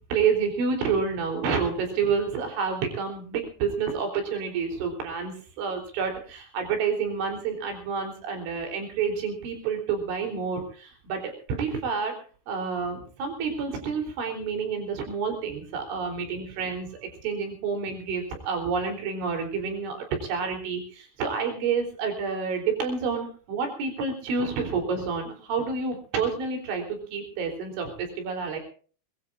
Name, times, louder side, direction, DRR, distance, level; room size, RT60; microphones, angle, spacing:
voice 1, 0.1-12.1 12.5-28.6, right 5 dB, 80° right, 4 dB, 6.0 m, -29 dB
23.0 x 22.0 x 2.5 m, 0.41 s
omnidirectional pair, 5.4 m